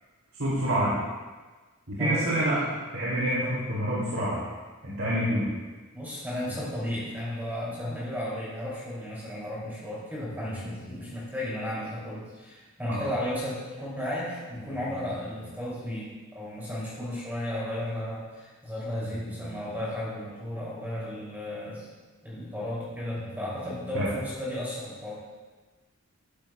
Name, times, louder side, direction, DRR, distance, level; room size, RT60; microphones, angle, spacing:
voice 1, 0.4-1.0 1.9-2.6 2.9-4.5 4.8-5.5 12.9-13.1 23.9-24.1, right 1 dB, 75° right, -8 dB, 2.7 m, -27 dB
voice 2, 2.0-2.3 5.9-21.9 22.2-25.1, left 1 dB, 10° right, -7 dB, 2.8 m, -34 dB
sound 1, 6.4-7.2 9.1-9.2 10.3-11.2 11.9-12.0 12.7-12.8 14.5-15.6 16.7-16.8 17.3-17.4 19.0-20.0 20.9-21.0 22.0-22.2 23.1-24.3, equal, 55° left, 3.2 m, -45 dB
13.0 x 11.5 x 2.3 m, 1.3 s
head